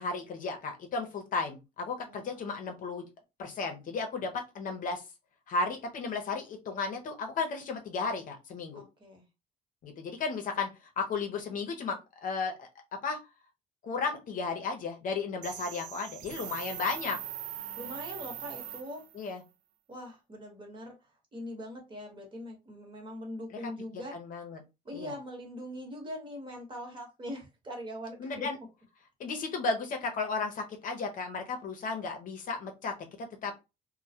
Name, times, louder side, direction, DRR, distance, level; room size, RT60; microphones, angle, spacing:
voice 1, 0.0-3.1 3.4-5.0 5.5-8.8 9.8-12.7 13.0-13.2 13.8-17.2 19.1-19.4 23.5-23.7 24.1-24.6 24.9-25.1 28.2-28.6 29.2-33.5, left 4 dB, 50° left, 4 dB, 0.7 m, -34 dB
voice 2, 2.0-2.7 8.7-9.2 17.8-19.0 19.9-20.9 21.3-24.1 24.8-28.5, equal, 30° right, 2 dB, 1.1 m, -42 dB
sound 1, 15.4-19.3, right 11 dB, 50° right, 0.4 m, -41 dB
2.1 x 2.1 x 2.7 m, 0.25 s
cardioid pair, 110°, 17 cm